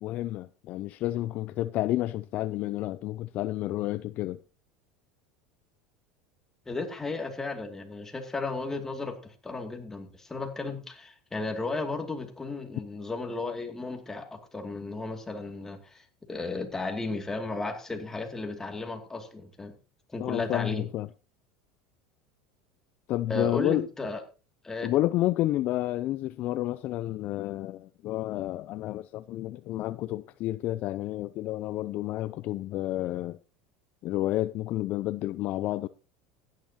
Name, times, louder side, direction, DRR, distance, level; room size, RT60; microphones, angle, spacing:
voice 1, 0.0-4.4 20.2-21.1 23.1-23.9 24.8-33.4 34.0-35.9, left 15 dB, 50° left, 0.4 m, -30 dB
voice 2, 6.7-19.7 20.1-20.9 23.3-24.2 24.6-24.9, left 3 dB, 15° left, 2.5 m, -34 dB
15.5 x 10.5 x 2.9 m
supercardioid pair, 100°, 3 cm